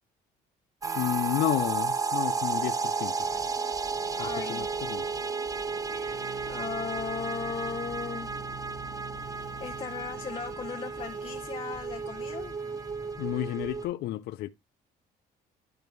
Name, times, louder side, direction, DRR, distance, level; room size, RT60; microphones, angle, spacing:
sound 1, 0.8-13.9, right 5 dB, 20° right, 0.6 m, -33 dB
sound 2, 0.8-13.3, right 8 dB, 50° right, 1.3 m, -49 dB
voice 1, 0.9-3.3 4.2-5.0 13.2-14.5, left 15 dB, 75° left, 0.5 m, -31 dB
sound 3, 3.2-13.8, equal, ahead, 1.5 m, -52 dB
voice 2, 4.2-4.7 6.5-8.3 9.6-12.5, left 6 dB, 35° left, 1.0 m, -37 dB
11.0 x 5.1 x 3.1 m
cardioid pair, 110°, 17 cm